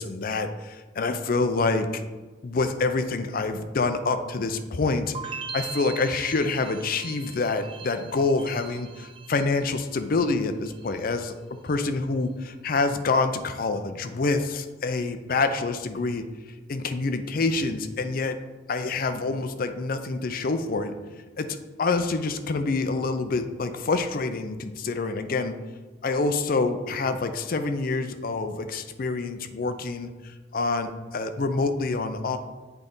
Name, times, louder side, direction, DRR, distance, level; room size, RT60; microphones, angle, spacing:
voice 1, 0.0-1.9 2.4-11.3 11.6-16.3 16.7-18.4 18.7-20.9 21.4-21.5 21.8-25.5 26.0-32.4, left 3 dB, 50° left, 9 dB, 0.5 m, -27 dB
sound 1, 5.1-10.2 10.5-11.1, right 6 dB, 30° right, 0.4 m, -40 dB
8.1 x 3.9 x 3.7 m, 1.3 s
head